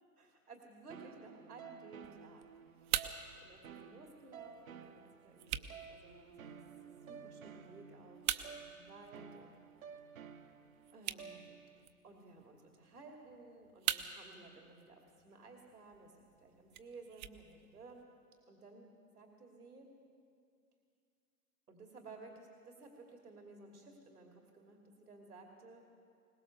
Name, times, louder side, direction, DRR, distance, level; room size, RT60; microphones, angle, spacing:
voice 1, 0.2-2.9 3.4-6.6 7.1-9.6 10.9-11.6 12.0-18.1 18.5-18.9 19.1-19.9 21.7-25.8, right 3 dB, 80° right, 1 dB, 2.8 m, -56 dB
sound 1, 0.9-11.9, right 7 dB, 65° right, 1.2 m, -53 dB
sound 2, 2.0-18.0, right 12 dB, 30° right, 0.8 m, -45 dB
22.0 x 20.0 x 6.7 m, 2.4 s
figure-of-eight pair, 110°, 45 cm